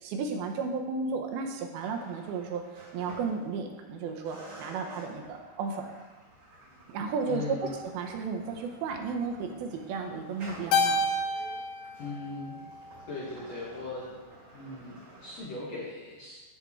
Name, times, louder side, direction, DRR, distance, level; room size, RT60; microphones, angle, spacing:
voice 1, 0.0-5.9 6.9-7.7 7.9-11.0, right 5 dB, 80° right, 4 dB, 2.6 m, -33 dB
sound 1, 1.7-3.9 4.3-15.4, right 1 dB, 55° right, 4.3 m, -51 dB
voice 2, 7.3-7.7 12.0-12.6 13.1-14.1 14.5-16.4, left 3 dB, 55° left, -6 dB, 2.0 m, -39 dB
Keyboard (musical), 10.7-13.2, left 2 dB, 85° left, 2.6 m, -30 dB
13.0 x 4.4 x 3.6 m, 1.3 s
omnidirectional pair, 4.4 m